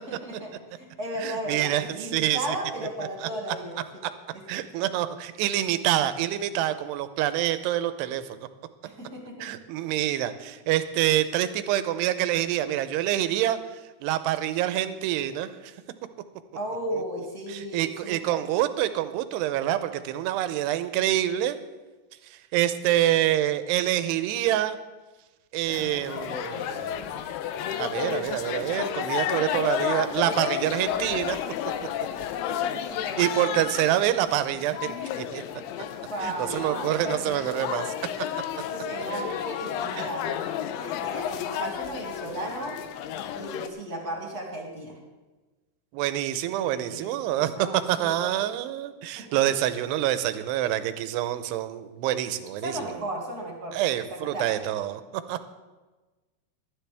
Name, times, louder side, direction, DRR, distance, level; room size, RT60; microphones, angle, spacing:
voice 1, 0.1-3.8 4.3-4.4 8.8-9.5 16.5-18.4 32.5-33.2 36.1-37.2 38.7-40.3 40.8-42.8 43.3-45.0 46.5-48.3 49.2-49.4 52.6-54.5, right 1 dB, 30° right, -1 dB, 1.8 m, -35 dB
voice 2, 1.2-2.6 3.2-3.3 4.5-8.2 9.4-15.7 17.5-21.6 22.2-24.8 25.5-27.2 27.7-31.4 33.2-35.4 36.2-37.9 38.3-38.4 40.0-40.1 45.9-53.0 53.7-55.5, right 12 dB, 80° right, 11 dB, 2.7 m, -26 dB
sound 1, 25.7-43.7, left 10 dB, 80° left, 2.5 m, -32 dB
19.0 x 12.0 x 3.5 m, 1.2 s
omnidirectional pair, 5.0 m